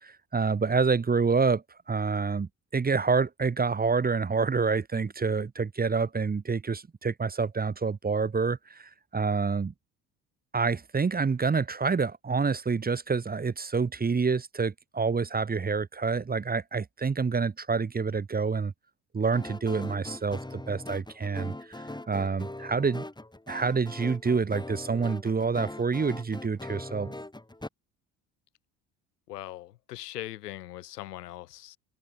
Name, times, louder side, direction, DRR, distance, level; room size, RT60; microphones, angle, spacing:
voice 1, 0.0-9.7 10.5-18.7 19.1-23.0 23.5-27.1, right 5 dB, 20° right, 1.1 m, -27 dB
sound 1, 19.3-27.7, left 1 dB, 10° left, 6.7 m, -41 dB
voice 2, 29.3-31.8, left 15 dB, 80° left, 2.0 m, -40 dB
hypercardioid pair, 60°, 47 cm